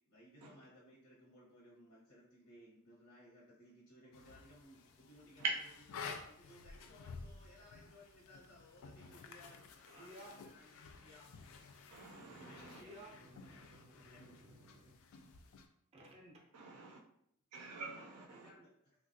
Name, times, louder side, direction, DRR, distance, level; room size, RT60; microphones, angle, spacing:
voice 1, 0.1-5.5 6.0-11.3 12.2-13.1 13.4-13.6 14.1-14.3 17.9-18.7, equal, 85° left, 0.8 m, -61 dB
sound 1, 4.1-15.6, left 5 dB, 65° left, 0.3 m, -53 dB
voice 2, 9.8-10.6 10.9-11.0 11.3-11.5 12.2-14.9 15.9-16.3, equal, 30° right, 0.5 m, -57 dB
voice 3, 11.9-12.8 16.5-17.0 17.5-18.5, right 4 dB, 90° right, 0.5 m, -43 dB
3.4 x 2.3 x 2.5 m
head